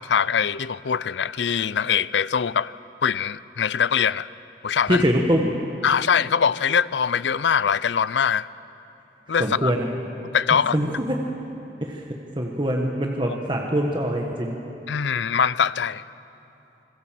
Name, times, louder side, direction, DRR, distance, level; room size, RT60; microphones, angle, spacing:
voice 1, 0.0-2.7 3.0-4.3 4.6-5.0 5.8-8.5 9.3-9.7 10.3-10.8 14.9-16.0, left 7 dB, 85° left, 18 dB, 0.5 m, -22 dB
voice 2, 4.9-5.5 9.4-9.9 10.5-11.1 11.8-12.0 12.3-14.6, equal, 25° right, 0 dB, 1.5 m, -23 dB
26.0 x 20.5 x 7.6 m, 2.9 s
head